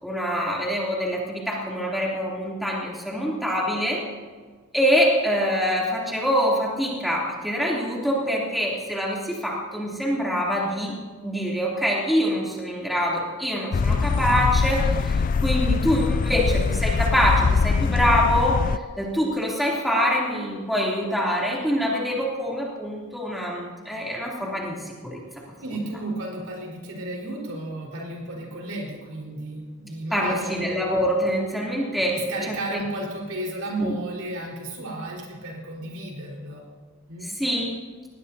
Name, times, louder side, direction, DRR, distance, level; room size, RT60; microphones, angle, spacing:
voice 1, 0.0-4.0 4.7-10.9 11.2-25.2 30.1-32.2 32.5-32.8 33.8-33.9 37.2-37.7, equal, ahead, -5 dB, 3.1 m, -25 dB
sound 1, 13.7-18.8, left 5 dB, 40° left, 0.3 m, -22 dB
voice 2, 25.5-30.6 32.1-36.6 37.1-37.3, right 1 dB, 85° right, -1 dB, 4.6 m, -33 dB
21.0 x 17.5 x 2.8 m, 1.5 s
head